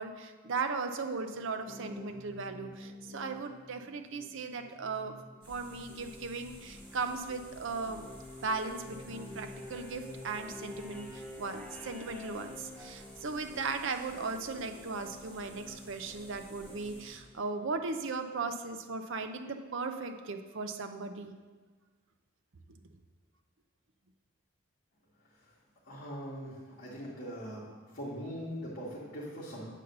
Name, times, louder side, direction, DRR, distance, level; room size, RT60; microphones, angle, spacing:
voice 1, 0.0-5.1 5.5-8.0 8.4-21.3, right 4 dB, 60° right, 7 dB, 0.6 m, -37 dB
sound 1, 1.7-17.9 19.4-19.5, left 2 dB, 5° left, 0.7 m, -49 dB
sound 2, 5.4-17.2, equal, 25° right, 2.0 m, -54 dB
voice 2, 25.8-27.6 27.9-29.6, equal, 45° left, -9 dB, 1.7 m, -41 dB
8.2 x 4.0 x 6.6 m, 1.4 s
head